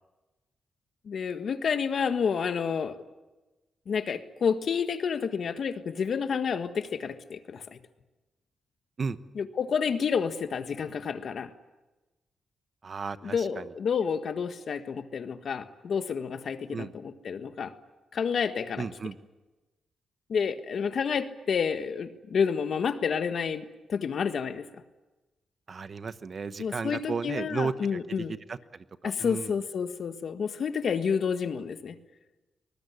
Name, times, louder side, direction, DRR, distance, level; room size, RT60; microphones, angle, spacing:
voice 1, 1.0-3.0 3.9-7.8 9.3-11.5 13.2-17.7 18.1-18.9 20.3-24.7 26.6-28.3 29.0-32.0, left 6 dB, 60° left, 10 dB, 1.6 m, -29 dB
voice 2, 12.8-13.6 16.7-16.9 18.8-19.1 25.7-28.8 29.2-29.5, right 5 dB, 45° right, 13 dB, 1.1 m, -34 dB
24.5 x 20.5 x 9.8 m, 1.1 s
cardioid pair, 110°, 0 cm